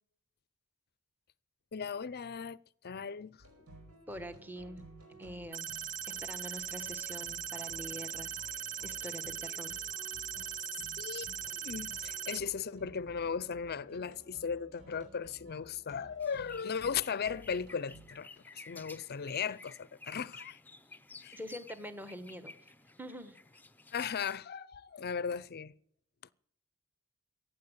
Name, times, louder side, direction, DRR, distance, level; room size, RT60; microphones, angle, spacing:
voice 1, 1.7-3.4 11.0-20.6 21.2-21.4 23.9-25.7, left 6 dB, 45° left, 0.6 m, -37 dB
sound 1, 3.4-18.1, right 1 dB, 75° right, 5.1 m, -55 dB
voice 2, 4.1-4.8 5.2-5.7 6.2-9.8 21.3-22.5 23.0-23.4, equal, 10° right, 1.2 m, -45 dB
sound 2, 5.5-12.4, right 8 dB, 40° right, 0.7 m, -40 dB
sound 3, 16.2-24.4, left 3 dB, 10° left, 0.7 m, -53 dB
15.0 x 9.1 x 8.0 m
head